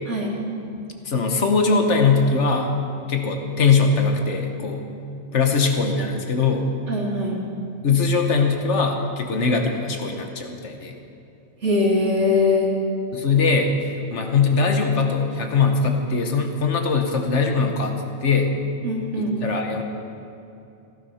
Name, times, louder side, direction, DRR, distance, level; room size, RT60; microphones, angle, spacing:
voice 1, 1.0-2.7 3.1-4.8 5.3-6.7 7.8-10.9 13.1-13.7 14.1-17.9 18.2-18.5 19.1-19.8, left 4 dB, 80° left, 4 dB, 1.5 m, -21 dB
voice 2, 6.9-7.4 11.6-12.7 18.8-19.4, left 3 dB, 85° right, -2 dB, 2.6 m, -21 dB
15.5 x 12.0 x 5.7 m, 2.7 s
omnidirectional pair, 1.2 m